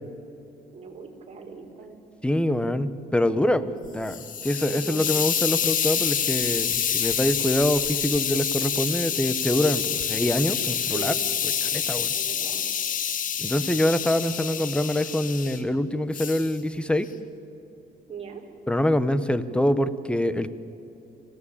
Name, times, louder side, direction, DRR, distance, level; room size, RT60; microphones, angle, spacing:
voice 1, 0.7-2.0 4.7-5.0 10.9-11.2 12.1-12.6 18.1-18.4, right 5 dB, 40° right, 0 dB, 4.5 m, -39 dB
voice 2, 2.2-11.1 11.7-12.1 13.4-17.1 18.7-20.5, left 1 dB, 5° left, 14 dB, 1.0 m, -25 dB
Hiss, 3.8-15.6 16.1-16.5, left 8 dB, 55° left, 1.8 m, -27 dB
26.0 x 17.0 x 8.7 m, 2.8 s
cardioid pair, 110°, 17 cm